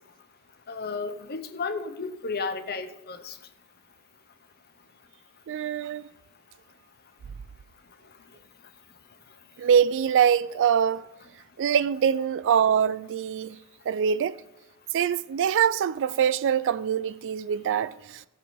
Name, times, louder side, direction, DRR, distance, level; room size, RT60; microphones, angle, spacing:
voice 1, 0.7-3.4, left 4 dB, 45° left, 0.8 m, -33 dB
voice 2, 5.5-6.1 9.6-11.1 11.6-13.6 13.9-14.4 14.9-18.3, right 8 dB, 55° right, 0.3 m, -24 dB
15.5 x 7.8 x 3.5 m
head